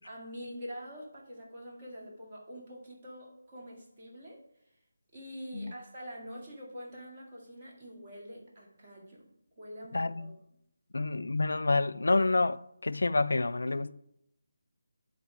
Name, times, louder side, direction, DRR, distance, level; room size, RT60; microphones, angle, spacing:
voice 1, 0.0-4.4 5.1-9.2 9.6-10.3 13.6-13.9, equal, 30° right, 2.0 m, -45 dB
voice 2, 9.9-10.4 10.9-13.9, left 3 dB, 80° left, 0.3 m, -28 dB
10.0 x 4.0 x 4.9 m
figure-of-eight pair, 170°, 0 cm